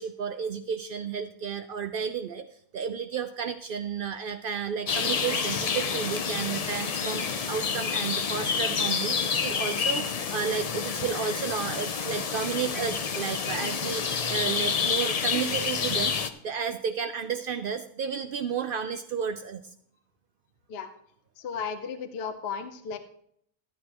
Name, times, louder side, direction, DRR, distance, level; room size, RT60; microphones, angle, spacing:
voice 1, 0.0-2.5 2.7-19.6, right 7 dB, 90° right, 9 dB, 0.4 m, -32 dB
sound 1, 4.9-16.3, left 6 dB, 85° left, 0.3 m, -29 dB
voice 2, 21.4-23.0, left 6 dB, 50° left, 9 dB, 0.9 m, -34 dB
13.5 x 9.5 x 2.9 m, 0.68 s
omnidirectional pair, 1.5 m